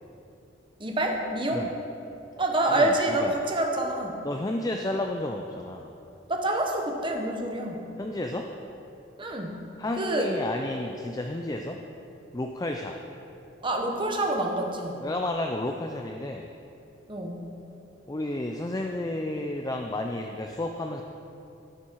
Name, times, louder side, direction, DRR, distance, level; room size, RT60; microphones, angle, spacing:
voice 1, 0.8-1.7 2.4-4.2 6.3-7.8 9.2-9.6 10.0-10.3 13.6-15.0 17.1-17.5, right 1 dB, 25° right, 2 dB, 1.1 m, -27 dB
voice 2, 2.7-3.4 4.2-5.9 8.0-8.5 9.8-11.8 12.3-13.0 15.0-16.5 18.1-21.0, left 1 dB, 20° left, 3 dB, 0.4 m, -31 dB
15.5 x 7.2 x 4.7 m, 2.8 s
head